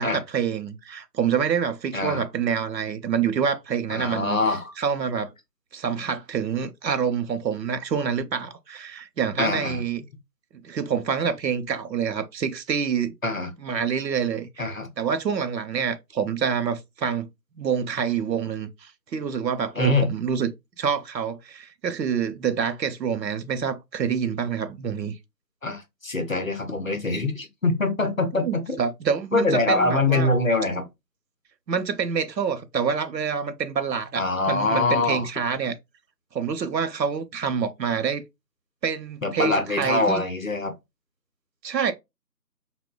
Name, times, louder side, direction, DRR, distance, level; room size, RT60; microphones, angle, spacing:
voice 1, 0.0-4.4 4.8-5.3 5.7-10.0 10.6-13.1 13.6-14.7 15.0-17.3 17.6-20.5 20.8-25.1 28.4-30.3 31.7-35.7 36.3-38.2 38.8-40.2 41.6-41.9, right 7 dB, 80° right, 0.6 m, -27 dB
voice 2, 3.9-4.7 9.4-9.8 13.2-13.5 14.6-14.9 19.8-20.1 25.6-28.8 29.3-30.9 34.2-35.3 39.2-40.7, left 2 dB, 55° left, 0.6 m, -24 dB
4.0 x 2.1 x 2.2 m
figure-of-eight pair, 175°, 50 cm